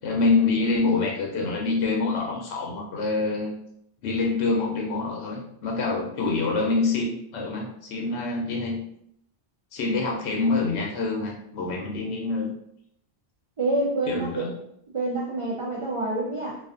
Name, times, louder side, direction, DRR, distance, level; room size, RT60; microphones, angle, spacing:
voice 1, 0.0-3.5 4.0-8.8 9.7-12.5 14.1-14.5, left 3 dB, 80° left, -1 dB, 0.8 m, -26 dB
voice 2, 13.6-14.5 14.9-16.6, right 2 dB, 60° right, -4 dB, 0.3 m, -27 dB
2.4 x 2.4 x 2.4 m, 0.72 s
omnidirectional pair, 1.1 m